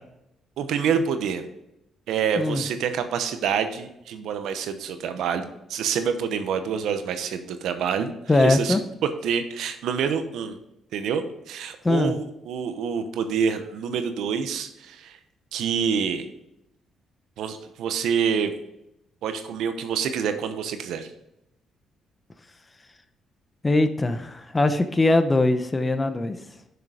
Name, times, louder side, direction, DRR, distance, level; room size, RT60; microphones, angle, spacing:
voice 1, 0.6-1.4 2.1-8.8 9.2-10.6 10.9-15.2 15.5-16.2 17.4-18.5 19.2-21.1, right 7 dB, 80° right, 9 dB, 0.9 m, -27 dB
voice 2, 8.3-8.8 11.8-12.1 23.6-26.4, left 2 dB, 20° left, 9 dB, 0.8 m, -21 dB
6.7 x 6.6 x 5.0 m, 0.85 s
cardioid pair, 90°, 0 cm